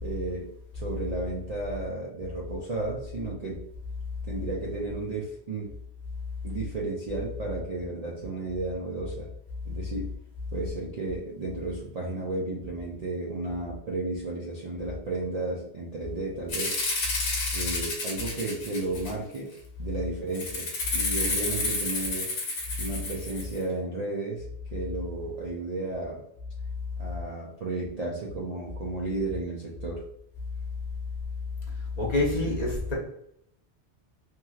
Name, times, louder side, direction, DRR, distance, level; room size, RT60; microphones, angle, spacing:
voice 1, 0.0-3.6 4.2-5.7 6.4-9.3 9.6-10.1 10.5-16.8 17.5-19.5 19.8-22.3 22.8-24.5 24.7-26.2 27.0-30.0 32.0-32.6, right 2 dB, 50° right, -3 dB, 0.5 m, -33 dB
Rattle (instrument), 16.5-19.4 20.3-23.6, left 3 dB, 85° left, 1.1 m, -30 dB
voice 2, 32.0-32.9, left 2 dB, 40° left, -3 dB, 0.9 m, -26 dB
3.0 x 2.8 x 2.3 m, 0.72 s
omnidirectional pair, 1.1 m